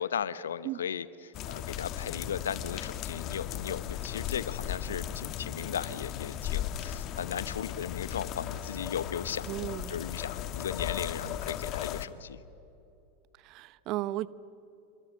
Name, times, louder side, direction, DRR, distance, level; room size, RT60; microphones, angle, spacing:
voice 1, 0.0-12.4, left 8 dB, 80° left, 17 dB, 0.9 m, -36 dB
sound 1, 1.3-12.1, left 10 dB, 45° left, 1.4 m, -36 dB
voice 2, 9.5-10.0 13.4-14.3, right 16 dB, 50° right, 18 dB, 0.8 m, -34 dB
28.5 x 25.5 x 7.6 m, 3.0 s
hypercardioid pair, 90°, 0 cm